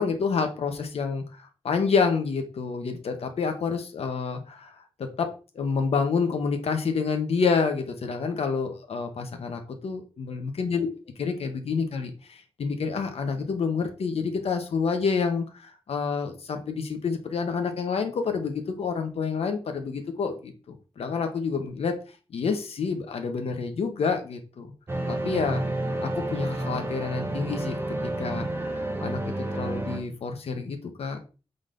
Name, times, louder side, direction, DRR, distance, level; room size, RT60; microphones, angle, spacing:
voice 1, 0.0-4.7 5.0-5.3 5.6-10.9 11.2-22.0 22.3-24.7 25.1-25.6 26.0-27.8 28.0-31.2, left 5 dB, 80° left, 6 dB, 0.8 m, -28 dB
sound 1, 24.9-30.0, right 1 dB, 25° right, 0.7 m, -30 dB
5.0 x 3.9 x 2.5 m, 0.34 s
wide cardioid pair, 150°, 10 cm